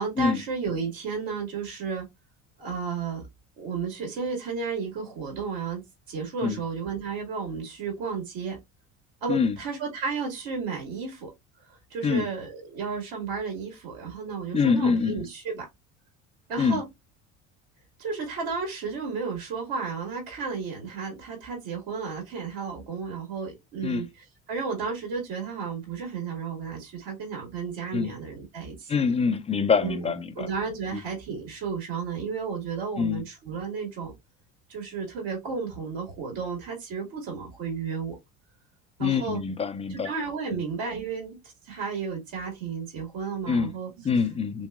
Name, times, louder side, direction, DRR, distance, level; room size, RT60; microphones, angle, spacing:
voice 1, 0.0-2.1 2.6-3.2 3.6-8.6 9.2-11.3 11.7-15.7 16.5-16.8 18.0-28.9 29.8-34.1 34.7-38.2 39.0-39.4 39.9-43.9, right 5 dB, 60° right, 1.7 m, -33 dB
voice 2, 14.5-15.1 16.6-16.8 23.8-24.0 27.9-28.1 28.9-30.5 33.0-33.2 39.0-40.1 40.5-40.6 43.5-43.7 44.0-44.7, left 5 dB, 15° left, 0.4 m, -25 dB
3.3 x 3.0 x 2.3 m
hypercardioid pair, 75°, 39 cm